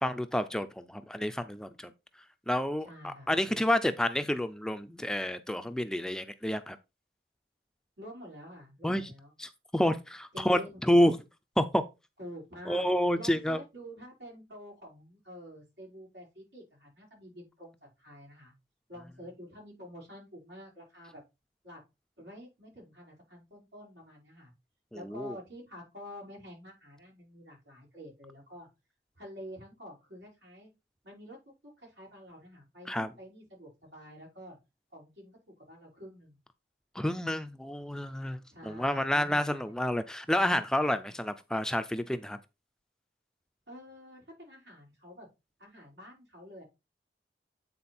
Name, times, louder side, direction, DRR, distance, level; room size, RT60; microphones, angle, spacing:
voice 1, 0.0-1.9 2.5-6.8 8.8-9.1 9.4-11.2 11.6-11.8 12.7-13.6 24.9-25.3 32.9-33.1 37.0-42.4, equal, 5° left, 0.4 m, -29 dB
voice 2, 2.8-3.3 8.0-9.3 10.3-10.8 12.2-12.9 13.1-18.5 18.9-21.2 21.6-21.8 22.2-24.5 24.9-28.7 29.2-30.7 31.0-31.4 31.8-34.6 34.9-35.4 35.7-36.4 38.5-39.7 43.7-45.3 45.6-46.6, equal, 90° right, 5.2 m, -48 dB
8.7 x 4.2 x 4.2 m
head